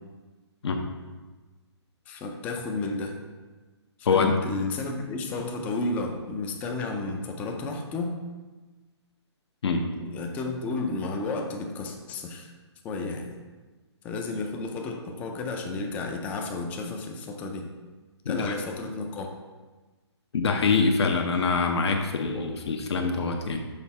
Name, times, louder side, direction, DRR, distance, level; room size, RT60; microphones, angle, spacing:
voice 1, 2.1-3.2 4.0-8.2 9.9-12.5 12.8-13.3 14.0-17.7 18.3-19.3, left 3 dB, 10° left, 3 dB, 0.4 m, -32 dB
voice 2, 4.1-4.4 9.6-9.8 18.3-18.6 20.3-23.6, left 4 dB, 65° left, 3 dB, 0.8 m, -24 dB
6.5 x 3.4 x 4.2 m, 1.3 s
hypercardioid pair, 155°, 15 cm